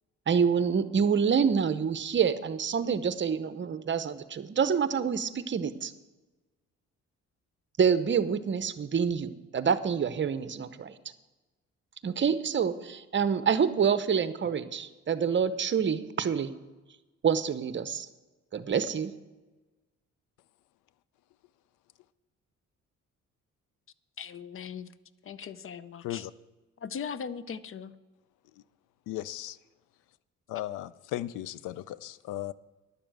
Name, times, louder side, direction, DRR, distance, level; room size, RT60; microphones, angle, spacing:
voice 1, 0.3-5.9 7.8-10.9 12.0-16.5 17.2-18.1 18.5-19.1, right 7 dB, 40° right, 0.8 m, -27 dB
voice 2, 24.2-24.9 25.2-26.2 26.8-27.9, left 7 dB, 45° left, 0.6 m, -39 dB
voice 3, 26.0-26.3 29.1-29.6 30.5-32.5, left 14 dB, 85° left, 0.5 m, -36 dB
11.0 x 7.0 x 7.7 m
cardioid pair, 90°, 30 cm